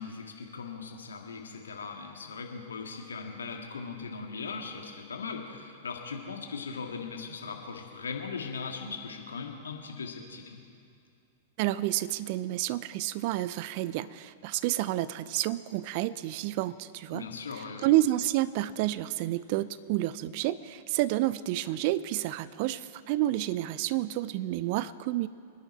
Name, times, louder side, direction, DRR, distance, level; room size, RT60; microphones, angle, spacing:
voice 1, 0.0-10.6 17.1-17.9, left 5 dB, 75° left, 2 dB, 1.9 m, -39 dB
voice 2, 11.6-17.3 17.8-25.3, right 15 dB, 50° right, 17 dB, 0.5 m, -29 dB
26.0 x 10.5 x 4.3 m, 2.4 s
figure-of-eight pair, 100°, 0 cm